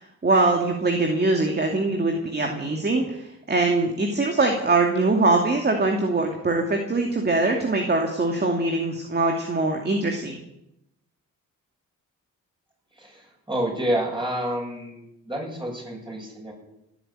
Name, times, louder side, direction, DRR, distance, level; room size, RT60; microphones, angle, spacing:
voice 1, 0.0-10.4, right 2 dB, 30° right, 3 dB, 2.4 m, -23 dB
voice 2, 13.0-16.5, right 1 dB, 15° right, 0 dB, 7.7 m, -29 dB
17.0 x 9.2 x 8.8 m, 0.84 s
cardioid pair, 80°, 32 cm